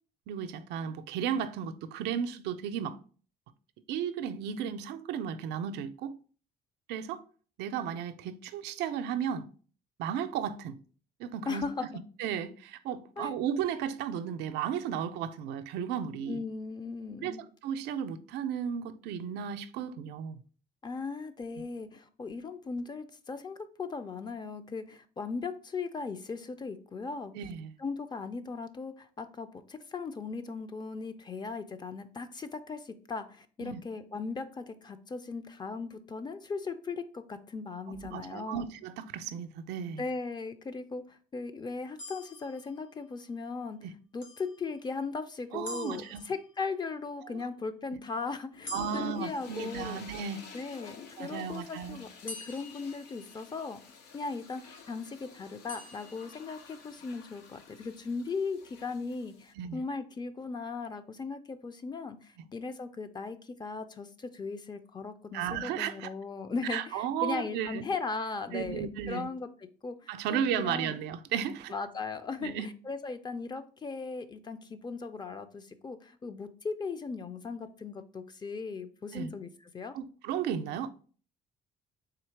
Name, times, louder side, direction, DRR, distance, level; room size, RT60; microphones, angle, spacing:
voice 1, 0.3-3.0 3.9-6.1 6.9-7.2 7.6-9.5 10.0-10.8 11.2-11.7 11.9-16.4 17.2-20.4 27.3-27.7 33.6-33.8 37.9-40.0 43.8-43.9 45.5-46.3 47.2-47.4 47.9-48.0 48.7-50.5 51.2-52.0 59.6-59.8 62.4-62.5 65.3-66.1 66.7-67.8 68.5-69.3 70.1-71.7 72.4-72.7 79.1-79.3 79.9-80.9, right 8 dB, 85° right, 0.4 m, -34 dB
voice 2, 11.5-11.9 13.2-13.4 16.3-17.4 20.8-27.3 27.8-38.7 40.0-43.8 44.1-50.0 50.5-53.8 54.1-69.5 69.8-71.0 71.7-79.5 79.7-80.0, left 4 dB, 25° left, 0.4 m, -38 dB
sound 1, 42.0-43.3 44.2-45.1 45.6-46.9 48.6-50.1 52.3-53.8 55.7-56.8, left 2 dB, 55° left, 1.1 m, -47 dB
sound 2, 48.5-59.5, left 6 dB, 80° left, 0.7 m, -50 dB
3.8 x 2.8 x 4.4 m
cardioid pair, 110°, 17 cm